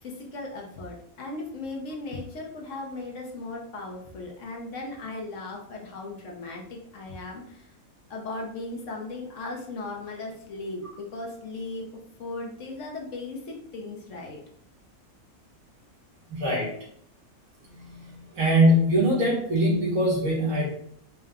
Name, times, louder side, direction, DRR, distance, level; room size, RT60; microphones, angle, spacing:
voice 1, 0.0-7.7 8.1-11.9 12.2-14.4, left 2 dB, 65° left, 0 dB, 1.1 m, -37 dB
voice 2, 16.3-16.7 17.7-20.7, equal, 75° right, -4 dB, 1.8 m, -22 dB
4.7 x 2.1 x 3.5 m, 0.67 s
omnidirectional pair, 1.5 m